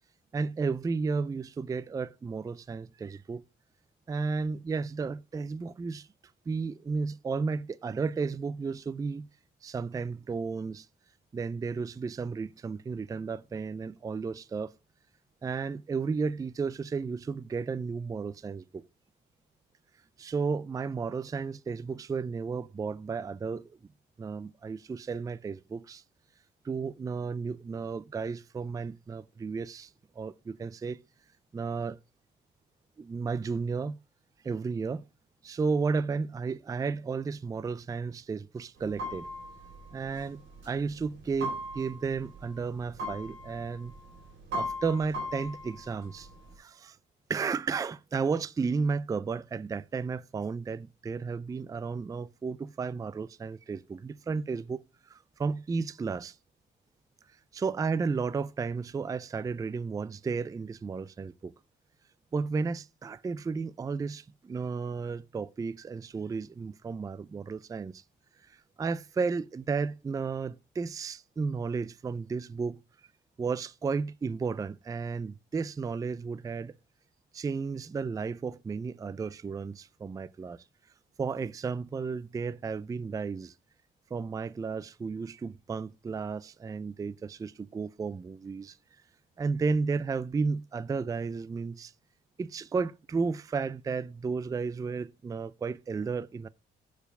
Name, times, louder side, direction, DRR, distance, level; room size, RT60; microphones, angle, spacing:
voice 1, 0.3-3.4 4.1-6.1 6.5-9.3 9.6-10.9 11.3-14.7 15.4-18.8 20.2-23.7 24.2-26.0 26.6-29.9 30.2-31.0 31.5-32.0 33.0-34.0 34.4-35.0 35.4-39.3 39.9-43.9 44.5-46.3 46.6-47.0 47.3-54.8 55.1-56.4 57.5-61.5 62.3-68.0 68.5-72.8 73.4-76.7 77.3-80.6 81.2-83.5 84.1-88.8 89.4-91.9 92.4-96.5, right 5 dB, 15° right, 0.3 m, -33 dB
sound 1, 38.8-46.5, equal, 75° right, 4.1 m, -40 dB
7.1 x 4.5 x 5.4 m
cardioid pair, 90°, 20 cm